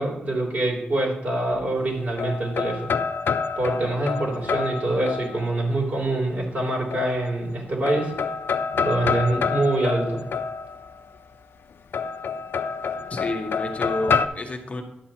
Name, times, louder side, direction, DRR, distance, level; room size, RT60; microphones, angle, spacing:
voice 1, 0.0-2.9 3.6-8.1 8.8-10.2, right 2 dB, 45° right, -3 dB, 3.1 m, -25 dB
sound 1, 1.8-5.7 6.9-7.6 7.9-11.1 11.9-14.3, left 5 dB, 65° left, 0.4 m, -28 dB
voice 2, 13.1-14.8, left 2 dB, 35° left, 2 dB, 0.9 m, -30 dB
10.5 x 7.4 x 2.9 m, 0.92 s
wide cardioid pair, 110°, 4 cm